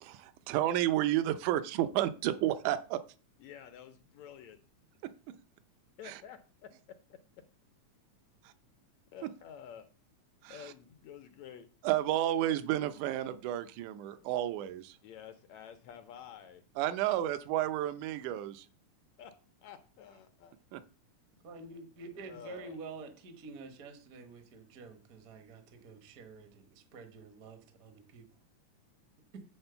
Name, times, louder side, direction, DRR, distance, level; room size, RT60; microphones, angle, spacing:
voice 1, 0.0-3.0 6.1-6.2 10.4-10.6 11.8-15.0 16.8-18.7 20.7-20.8, right 13 dB, 80° right, 12 dB, 2.1 m, -31 dB
voice 2, 3.4-4.6 6.0-6.4 9.1-9.9 10.5-11.7 14.1-14.3 15.0-16.6 19.2-19.3 19.6-20.6 22.2-22.8, left 9 dB, 75° left, 8 dB, 1.7 m, -50 dB
voice 3, 21.4-28.3 29.3-29.4, right 4 dB, 60° right, 6 dB, 0.9 m, -48 dB
8.8 x 3.8 x 6.7 m, 0.36 s
omnidirectional pair, 3.6 m